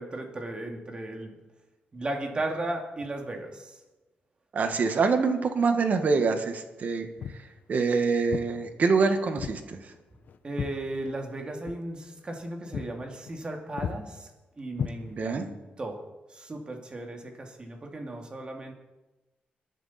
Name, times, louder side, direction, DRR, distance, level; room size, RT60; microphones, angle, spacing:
voice 1, 0.0-1.4 1.9-3.8 10.4-14.3 14.6-16.0 16.3-18.7, right 2 dB, 30° right, 2 dB, 2.4 m, -36 dB
voice 2, 4.5-7.1 7.7-9.8 15.1-15.5, right 4 dB, 50° right, 7 dB, 1.6 m, -25 dB
Walk footsteps, 7.2-7.5 8.3-8.5 9.4-9.6 9.9-11.4 11.6-11.8 12.2-12.4 12.7-12.9 13.2-13.5 13.8-14.0 14.7-15.4, left 7 dB, 65° left, 0.8 m, -35 dB
22.5 x 10.0 x 4.3 m, 1.1 s
cardioid pair, 115°, 3 cm